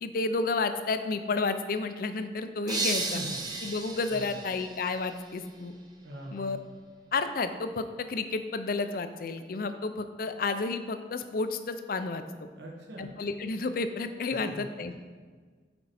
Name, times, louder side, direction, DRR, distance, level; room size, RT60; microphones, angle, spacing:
voice 1, 0.0-3.2 3.6-5.7 6.3-6.6 7.1-12.2 13.0-14.9, left 3 dB, 50° left, 9 dB, 0.4 m, -31 dB
sound 1, 2.7-5.5, right 3 dB, 25° right, 0.7 m, -34 dB
voice 2, 3.0-3.4 4.1-4.4 6.0-6.5 12.5-13.1 14.3-14.7, right 1 dB, 70° right, -1 dB, 1.1 m, -42 dB
8.6 x 4.4 x 4.2 m, 1.5 s
head